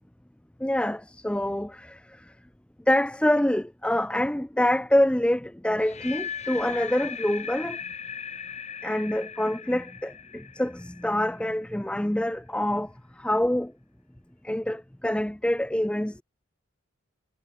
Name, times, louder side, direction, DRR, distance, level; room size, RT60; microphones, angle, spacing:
voice 1, 0.6-2.3 2.9-7.8 8.8-13.7 14.4-16.2, left 1 dB, 5° left, 0.4 m, -26 dB
sound 1, 5.7-11.8, left 7 dB, 30° left, 5.1 m, -38 dB
head